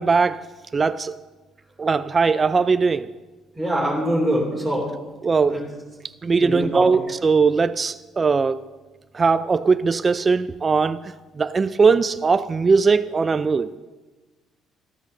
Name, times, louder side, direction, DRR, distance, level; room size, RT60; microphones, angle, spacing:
voice 1, 0.1-0.4 0.7-1.1 1.8-3.1 5.2-5.6 6.2-8.6 9.1-11.0 11.4-13.7, right 4 dB, 25° right, 12 dB, 0.4 m, -19 dB
voice 2, 3.5-4.9 5.5-5.6 6.4-7.0, equal, ahead, -6 dB, 3.2 m, -23 dB
13.5 x 13.5 x 6.6 m, 1.2 s
cardioid pair, 130°, 0 cm